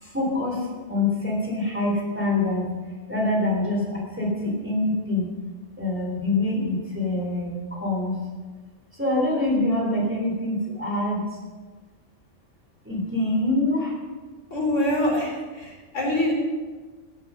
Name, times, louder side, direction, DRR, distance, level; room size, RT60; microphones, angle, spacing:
voice 1, 0.0-2.7 3.1-5.3 5.8-8.2 8.9-11.3 12.8-13.9, left 2 dB, 10° right, -2 dB, 3.4 m, -25 dB
voice 2, 14.5-16.3, left 1 dB, 65° left, -2 dB, 4.0 m, -25 dB
15.5 x 8.5 x 6.4 m, 1.4 s
omnidirectional pair, 1.3 m